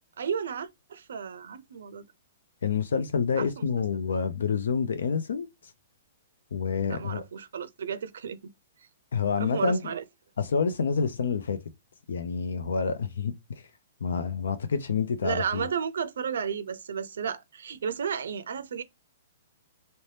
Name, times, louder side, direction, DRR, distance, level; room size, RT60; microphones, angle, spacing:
voice 1, 0.2-2.0 3.4-3.7 3.9-4.0 6.9-8.5 9.4-10.0 15.2-18.8, right 7 dB, 70° right, 0.4 m, -33 dB
voice 2, 2.6-5.5 6.5-7.2 9.1-9.8 10.4-11.6 12.1-13.3 14.0-15.7, left 5 dB, 85° left, 0.5 m, -28 dB
2.7 x 2.1 x 3.2 m
hypercardioid pair, 180°, 0 cm